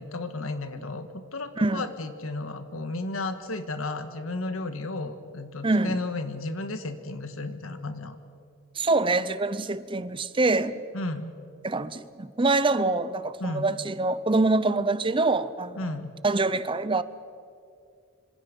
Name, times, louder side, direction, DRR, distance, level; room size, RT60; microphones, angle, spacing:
voice 1, 0.0-8.2 10.9-11.3 13.4-13.7 15.8-16.1, left 2 dB, 85° left, 1.7 m, -33 dB
voice 2, 5.6-6.0 8.8-10.8 11.6-15.8 16.2-17.0, right 3 dB, 25° right, 0.6 m, -25 dB
26.0 x 25.5 x 5.4 m
head